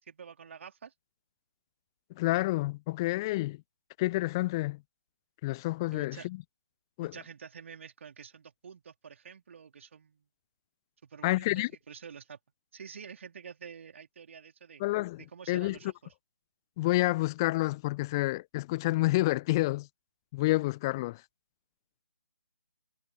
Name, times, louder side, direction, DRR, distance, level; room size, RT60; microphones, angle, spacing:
voice 1, 0.0-0.9 5.9-6.3 7.0-10.3 11.0-12.4 12.7-14.8 15.2-16.1, right 6 dB, 45° right, 3.5 m, -48 dB
voice 2, 2.2-3.6 4.0-4.8 5.4-6.4 7.0-7.1 11.2-11.7 14.8-15.8 16.8-19.9 20.3-21.2, left 19 dB, 15° left, 0.4 m, -29 dB
figure-of-eight pair, 145°, 10 cm